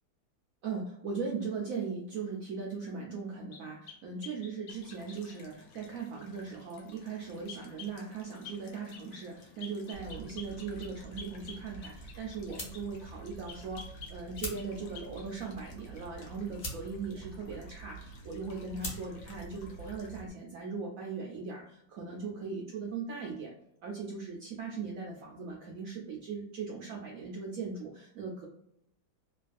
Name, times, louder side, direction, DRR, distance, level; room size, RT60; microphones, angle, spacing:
voice 1, 0.6-23.5 23.8-28.5, right 5 dB, 80° right, -1 dB, 0.7 m, -39 dB
sound 1, 3.5-5.4 7.5-8.0 8.4-8.6 8.9-9.3 9.6-12.9 13.5-14.7 14.9-15.3, left 6 dB, 90° left, 1.4 m, -48 dB
sound 2, 4.7-20.2, left 3 dB, 65° left, 1.1 m, -57 dB
sound 3, 9.9-20.3, right 1 dB, 45° left, 0.9 m, -45 dB
3.2 x 2.3 x 2.5 m, 0.77 s
omnidirectional pair, 2.0 m